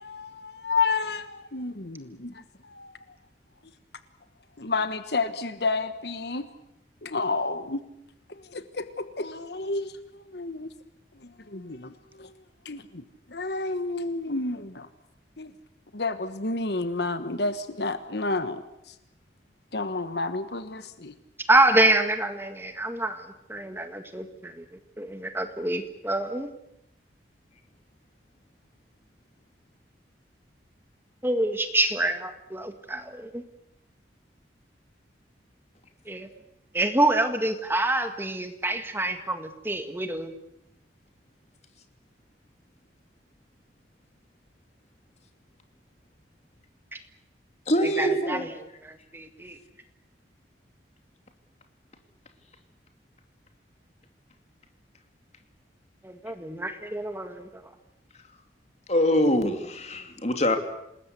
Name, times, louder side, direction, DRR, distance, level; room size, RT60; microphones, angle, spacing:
voice 1, 0.0-2.9 4.6-6.5 7.0-7.8 8.3-10.7 11.2-12.3 12.6-14.9 15.4-15.5 15.9-18.9 19.7-21.1, left 3 dB, 60° left, 1.3 m, -31 dB
voice 2, 21.5-24.6 25.0-26.5 31.2-33.4 36.1-36.3 36.7-40.3 46.9-47.0 48.0-48.5 48.8-49.6 56.0-57.5, right 2 dB, 10° right, 1.8 m, -26 dB
voice 3, 47.7-48.5 58.9-60.6, equal, 40° left, 3.0 m, -24 dB
27.5 x 20.5 x 8.3 m
head